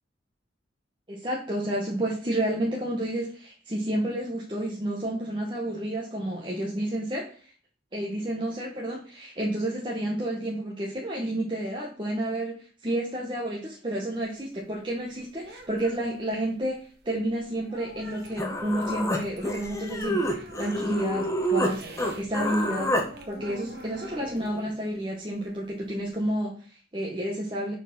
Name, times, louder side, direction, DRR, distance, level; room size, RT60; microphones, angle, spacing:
voice 1, 1.1-7.5 7.9-16.8 17.0-22.9 23.3-27.7, right 1 dB, 25° right, -3 dB, 1.3 m, -30 dB
sound 1, 14.1-22.2 22.6-26.3, right 1 dB, 55° right, 1.4 m, -46 dB
Human voice, 18.0-18.1 18.4-21.7 22.0-23.1, equal, 15° left, 1.1 m, -28 dB
7.2 x 4.3 x 5.4 m, 0.42 s
head